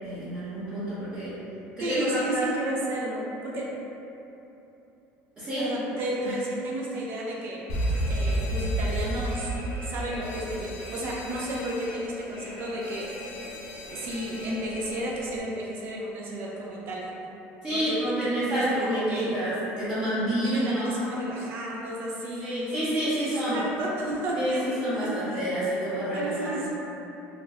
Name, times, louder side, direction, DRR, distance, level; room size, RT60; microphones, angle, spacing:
voice 1, 0.0-1.3 1.8-2.4 5.4-5.7 6.2-6.3 17.6-20.9 22.4-23.6 24.4-26.5, equal, 30° right, -15 dB, 0.8 m, -28 dB
voice 2, 1.8-3.7 5.6-7.7 8.1-9.5 9.8-13.1 13.9-17.1 17.7-19.4 20.4-22.7 23.2-25.4 26.1-26.7, right 1 dB, 50° right, -3 dB, 0.5 m, -32 dB
Alarm, 7.7-15.4, right 1 dB, 70° left, 0.5 m, -32 dB
2.4 x 2.1 x 3.4 m, 3.0 s
cardioid pair, 135°, 5 cm